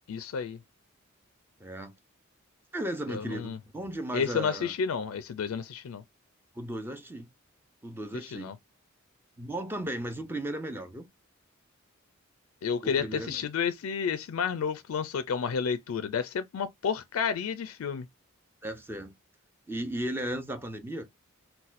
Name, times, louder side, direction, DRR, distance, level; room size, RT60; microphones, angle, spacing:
voice 1, 0.1-0.6 3.1-3.6 4.1-6.0 8.1-8.6 12.6-18.1, left 6 dB, 80° left, 0.4 m, -31 dB
voice 2, 1.6-1.9 2.7-4.7 6.6-7.3 7.8-8.5 9.4-11.1 12.8-13.4 18.6-19.1 19.7-21.1, right 1 dB, 10° right, 0.5 m, -35 dB
4.0 x 2.2 x 2.4 m
head